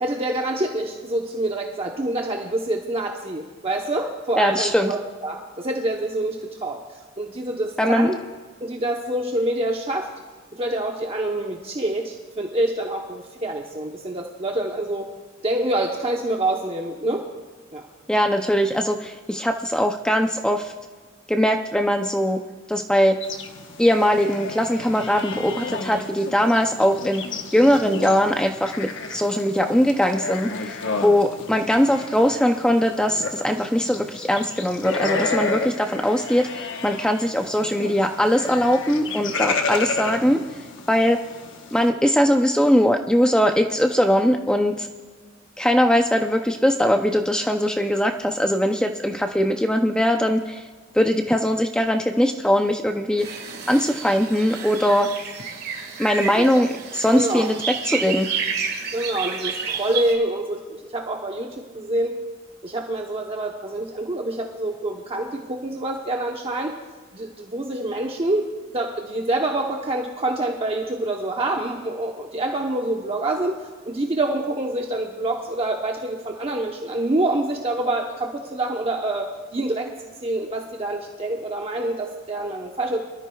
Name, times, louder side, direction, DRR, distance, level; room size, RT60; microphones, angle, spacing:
voice 1, 0.0-8.2 8.6-10.1 10.5-15.1 15.4-17.3 17.7-17.8 39.7-39.8 56.3-56.6 57.1-57.5 58.9-62.2 62.6-66.8 67.1-83.0, right 1 dB, 30° right, 1 dB, 0.9 m, -26 dB
voice 2, 4.4-4.9 7.8-8.1 18.1-20.7 21.3-22.4 22.7-23.2 23.8-27.3 27.5-40.4 40.9-41.2 41.7-44.9 45.6-50.6 50.9-53.4 53.7-55.1 56.0-57.6 57.9-58.3, equal, 5° left, 4 dB, 0.5 m, -20 dB
sound 1, 23.2-41.9, left 4 dB, 70° left, 1.1 m, -32 dB
sound 2, 53.2-60.1, right 5 dB, 55° right, 1.8 m, -31 dB
24.0 x 13.5 x 2.3 m, 1.4 s
head